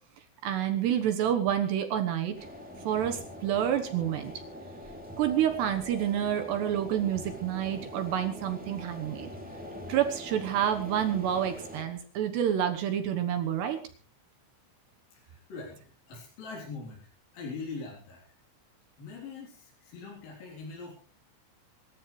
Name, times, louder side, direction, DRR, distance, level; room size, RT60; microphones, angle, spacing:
voice 1, 0.4-2.4 2.8-4.3 5.2-9.3 9.9-13.8, right 10 dB, 70° right, 7 dB, 3.0 m, -28 dB
sound 1, 2.3-11.8, equal, ahead, 3.3 m, -44 dB
voice 2, 15.1-17.0 17.3-18.2 19.0-20.9, left 4 dB, 50° left, -3 dB, 5.1 m, -42 dB
25.0 x 13.5 x 3.2 m, 0.37 s
omnidirectional pair, 5.7 m